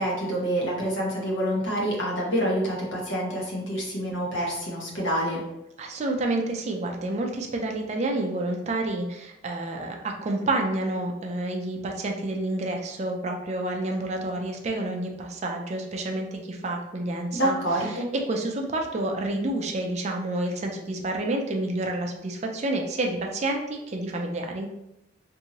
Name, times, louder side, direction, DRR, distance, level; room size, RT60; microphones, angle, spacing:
voice 1, 0.0-5.4 17.3-18.1, right 1 dB, 75° left, -3 dB, 1.0 m, -27 dB
voice 2, 5.8-17.5 17.9-24.7, right 2 dB, 35° right, 2 dB, 0.3 m, -29 dB
2.8 x 2.6 x 2.8 m, 0.86 s
head